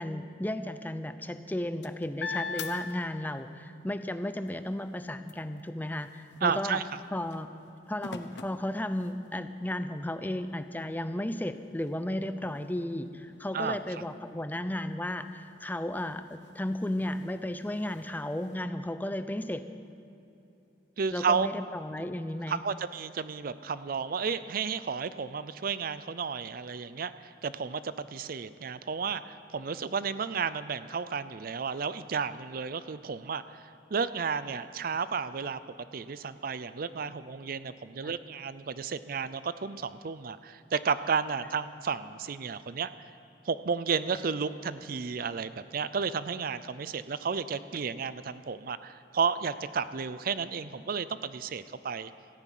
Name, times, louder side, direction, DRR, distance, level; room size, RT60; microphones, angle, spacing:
voice 1, 0.0-6.8 7.1-7.5 7.9-19.6 21.1-22.6 38.0-38.1, left 1 dB, 10° left, 10 dB, 0.5 m, -34 dB
sound 1, 1.3-3.7 4.1-9.5 10.1-10.2 10.6-18.6, left 5 dB, 70° left, 0.9 m, -45 dB
voice 2, 6.4-6.8 13.5-13.8 21.0-21.5 22.0-22.1 22.5-33.6 33.9-35.6 35.9-42.9 43.5-52.1, right 5 dB, 50° right, 14 dB, 0.5 m, -32 dB
14.5 x 9.8 x 9.2 m, 2.8 s
head